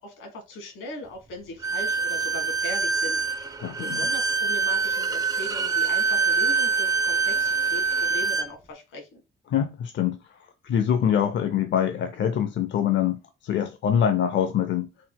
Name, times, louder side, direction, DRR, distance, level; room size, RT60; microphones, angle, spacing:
voice 1, 0.0-9.2, left 1 dB, 90° left, 1.8 m, -39 dB
Bowed string instrument, 1.6-8.5, right 5 dB, 20° right, 0.6 m, -25 dB
voice 2, 3.6-4.1 9.5-10.2 10.6-14.9, left 9 dB, 65° left, 0.6 m, -24 dB
4.0 x 3.8 x 2.3 m
cardioid pair, 90°, 20 cm